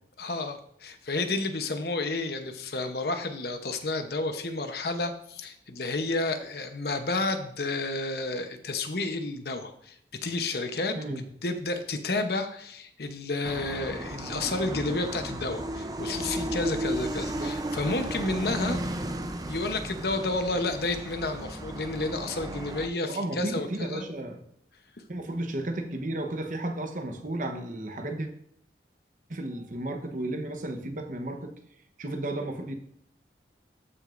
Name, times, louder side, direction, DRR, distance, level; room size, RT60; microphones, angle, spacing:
voice 1, 0.2-18.8 19.5-24.1, left 2 dB, 60° left, 7 dB, 0.9 m, -31 dB
sound 1, 13.4-22.9, right 1 dB, 20° right, 0.5 m, -34 dB
voice 2, 18.8-19.1 23.1-24.4 25.1-28.3 29.3-31.5 32.0-32.7, right 1 dB, 45° right, 5 dB, 1.0 m, -33 dB
13.5 x 6.3 x 2.5 m, 0.68 s
head